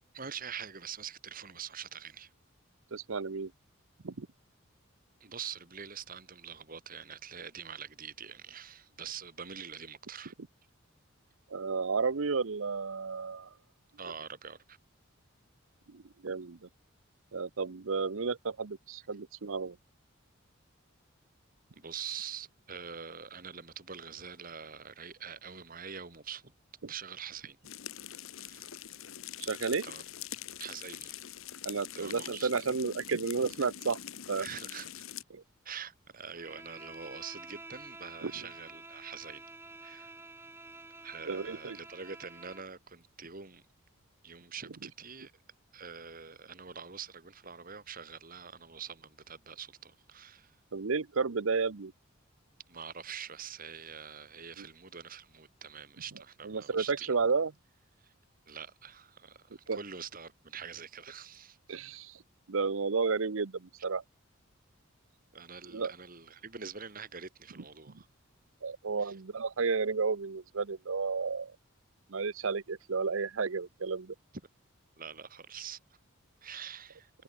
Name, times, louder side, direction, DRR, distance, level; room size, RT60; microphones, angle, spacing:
voice 1, 0.1-2.3 5.2-10.3 14.0-14.8 21.7-26.5 26.9-27.6 28.4-28.7 29.8-30.0 30.6-31.2 31.9-32.5 34.4-35.0 35.6-39.4 39.8-40.2 41.0-43.6 44.2-45.3 45.7-50.6 52.7-57.1 58.0-58.1 58.5-61.8 65.3-68.1 69.0-69.2 75.0-75.8 76.4-77.1, right 7 dB, 45° right, 2.3 m, -45 dB
voice 2, 2.9-3.5 4.0-4.3 11.5-13.5 15.9-16.6 17.3-19.8 29.4-29.8 31.6-34.0 34.3-34.5 35.3-35.4 38.2-38.3 41.3-41.8 50.7-51.9 56.4-57.5 59.7-59.8 61.7-62.2 62.5-64.0 65.7-65.9 68.6-71.5 72.1-74.1, right 4 dB, 70° right, 0.8 m, -32 dB
sound 1, 27.6-35.2, left 10 dB, 80° left, 1.0 m, -44 dB
Bowed string instrument, 36.3-42.7, right 2 dB, 10° right, 2.2 m, -49 dB
head